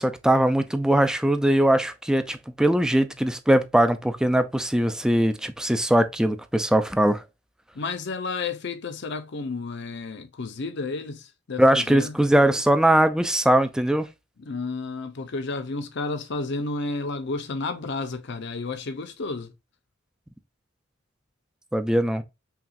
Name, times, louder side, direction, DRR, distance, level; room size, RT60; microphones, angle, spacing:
voice 1, 0.0-7.2 11.6-14.1 21.7-22.2, right 1 dB, 5° right, 0.3 m, -21 dB
voice 2, 7.7-12.1 14.4-19.5, left 3 dB, 60° left, 0.6 m, -31 dB
5.7 x 2.4 x 2.5 m
head